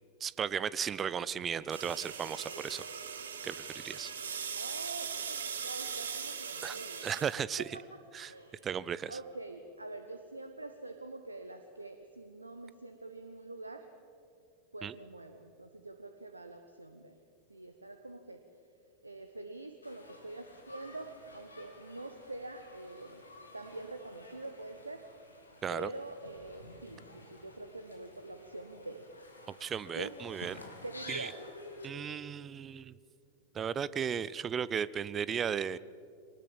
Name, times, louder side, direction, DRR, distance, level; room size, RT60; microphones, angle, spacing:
voice 1, 0.2-2.9 3.4-4.1 6.6-6.8 7.0-7.6 8.1-8.3 8.6-9.2 14.8-14.9 25.6-25.9 29.6-30.6 31.1-31.3 31.8-33.0 33.5-35.8, right 7 dB, 25° right, 19 dB, 0.6 m, -35 dB
sound 1, 1.7-7.4, right 6 dB, 65° right, 1.8 m, -40 dB
voice 2, 4.6-7.1 7.7-8.8 9.1-13.9 14.7-17.2 17.5-18.4 19.0-23.2 23.5-25.0 25.7-29.0 29.9-30.1 30.8-31.4, right 2 dB, 80° right, 7 dB, 1.1 m, -45 dB
sound 2, 19.8-31.9, left 2 dB, 80° left, 3.0 m, -52 dB
23.0 x 19.5 x 7.4 m, 2.4 s
figure-of-eight pair, 90°, 0 cm